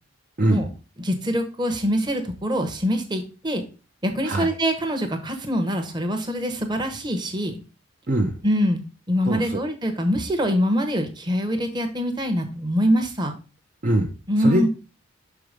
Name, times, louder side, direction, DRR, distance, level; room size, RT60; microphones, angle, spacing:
voice 1, 1.0-3.6 4.0-7.6 8.4-8.8 9.1-13.3 14.3-14.7, equal, 20° right, 5 dB, 1.0 m, -24 dB
voice 2, 8.1-8.4 9.3-9.6 13.8-14.1 14.4-14.7, right 1 dB, 40° right, 1 dB, 0.7 m, -22 dB
6.1 x 4.8 x 5.0 m, 0.33 s
head